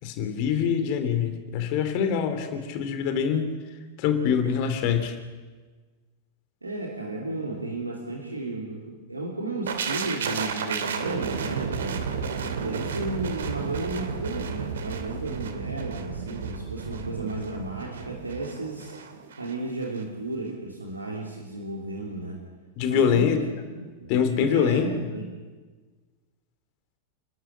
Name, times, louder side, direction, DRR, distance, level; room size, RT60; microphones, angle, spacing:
voice 1, 0.0-3.5 4.0-5.1 22.8-23.4 24.1-24.9, left 7 dB, 45° left, 8 dB, 3.1 m, -24 dB
voice 2, 6.6-12.1 12.6-19.0 19.4-22.5 22.9-24.1 24.5-25.3, right 2 dB, 80° right, 0 dB, 3.1 m, -33 dB
sound 1, 9.7-19.5 19.8-20.0, right 6 dB, 65° right, 2.3 m, -32 dB
30.0 x 12.5 x 8.9 m, 1.4 s
figure-of-eight pair, 90°, 0 cm